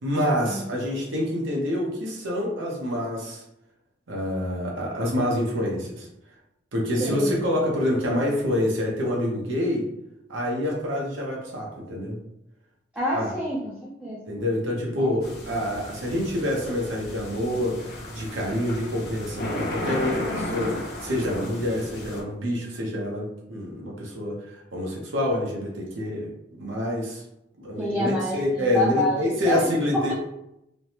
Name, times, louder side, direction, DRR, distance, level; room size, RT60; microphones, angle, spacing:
voice 1, 0.0-3.4 4.1-6.1 6.7-9.8 10.3-12.2 13.1-13.3 14.3-17.8 18.1-26.3 26.6-27.2 27.6-30.1, left 1 dB, 85° right, -2 dB, 0.8 m, -27 dB
voice 2, 7.0-7.3 12.9-14.2 15.0-15.2 27.8-30.1, left 1 dB, 5° right, -7 dB, 0.4 m, -27 dB
sound 1, 15.2-22.2, left 1 dB, 55° left, 0.7 m, -34 dB
3.2 x 2.1 x 2.8 m, 0.84 s
head